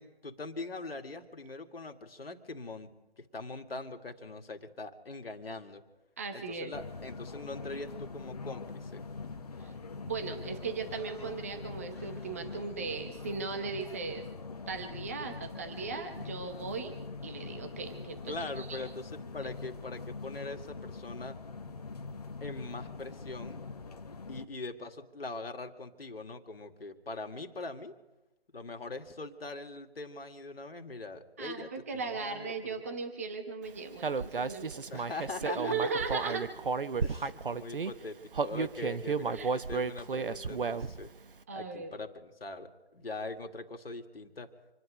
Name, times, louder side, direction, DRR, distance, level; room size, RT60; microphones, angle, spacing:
voice 1, 0.0-5.8 6.3-9.0 18.3-21.4 22.4-23.6 24.3-27.9 28.5-32.5 34.9-35.8 37.0-41.1 41.5-44.5, left 3 dB, 65° left, 5 dB, 2.1 m, -42 dB
voice 2, 6.2-6.7 9.6-9.7 10.0-14.2 14.7-16.9 17.2-18.8 31.4-34.9 35.4-36.4 39.3-39.5 41.5-41.9, right 4 dB, 15° right, 5 dB, 0.8 m, -37 dB
sound 1, 6.7-24.5, left 4 dB, 40° left, 1.1 m, -43 dB
Human voice, 34.0-37.9 38.3-41.1, right 4 dB, 55° right, 0.9 m, -33 dB
27.0 x 10.5 x 5.1 m, 1.0 s
figure-of-eight pair, 160°, 31 cm